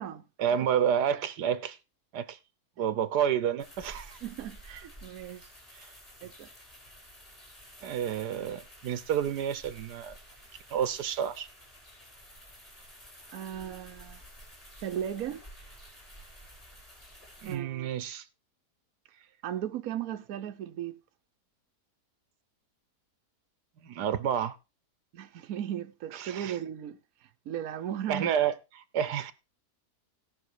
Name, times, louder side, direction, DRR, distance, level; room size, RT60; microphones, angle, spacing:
voice 1, 0.4-1.8 2.1-2.4 2.8-4.2 5.7-5.9 7.8-10.1 10.7-11.5 17.4-18.2 23.8-24.6 26.2-26.6 28.1-29.3, right 9 dB, 85° right, 1.4 m, -30 dB
sound 1, 3.6-17.5, equal, 20° left, 4.7 m, -51 dB
voice 2, 4.2-5.5 6.2-6.5 13.3-14.2 14.8-15.4 17.5-17.9 19.4-21.0 25.1-28.3, right 10 dB, 65° right, 1.2 m, -37 dB
17.0 x 5.8 x 4.7 m
omnidirectional pair, 1.7 m